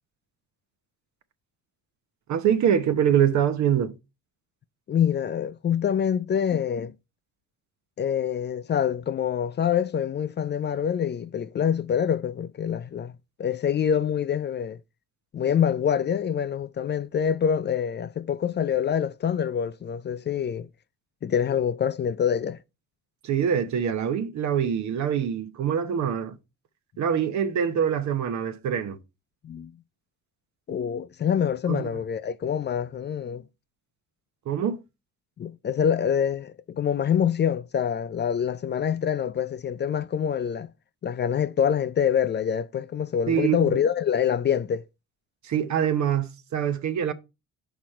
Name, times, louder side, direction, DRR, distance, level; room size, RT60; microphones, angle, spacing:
voice 1, 2.3-3.9 23.2-26.4 27.0-29.0 31.7-31.9 34.5-34.8 43.3-43.8 45.4-47.1, right 8 dB, 70° right, 0.9 m, -24 dB
voice 2, 4.9-6.9 8.0-13.1 13.4-14.8 15.3-20.7 21.2-22.6 29.4-29.7 30.7-33.4 35.4-40.7 41.0-44.8, left 8 dB, 35° left, 0.4 m, -25 dB
5.9 x 5.1 x 4.3 m
cardioid pair, 90°, 30 cm